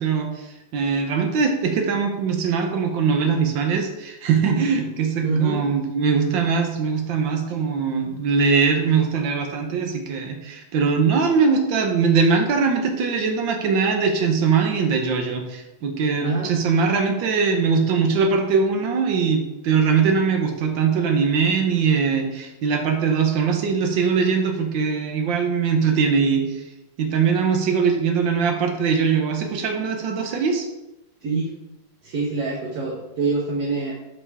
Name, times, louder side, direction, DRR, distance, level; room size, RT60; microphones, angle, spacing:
voice 1, 0.0-26.6 27.0-30.7, right 5 dB, 85° right, 4 dB, 1.6 m, -21 dB
voice 2, 5.2-5.7 16.2-16.5 31.2-31.5 32.0-33.9, right 4 dB, 60° right, -2 dB, 1.4 m, -25 dB
5.6 x 5.3 x 4.7 m, 0.96 s
omnidirectional pair, 2.0 m